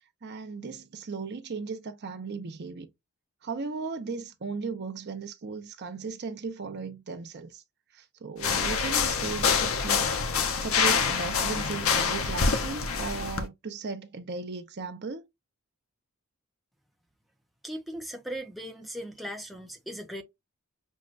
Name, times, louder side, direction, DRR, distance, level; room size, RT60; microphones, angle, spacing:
voice 1, 0.2-2.9 3.4-7.6 7.9-15.2, right 4 dB, 50° right, 0.6 m, -37 dB
sound 1, 8.4-13.4, left 5 dB, 75° left, 0.7 m, -26 dB
voice 2, 17.6-20.2, equal, ahead, 0.6 m, -38 dB
6.3 x 2.2 x 2.4 m
head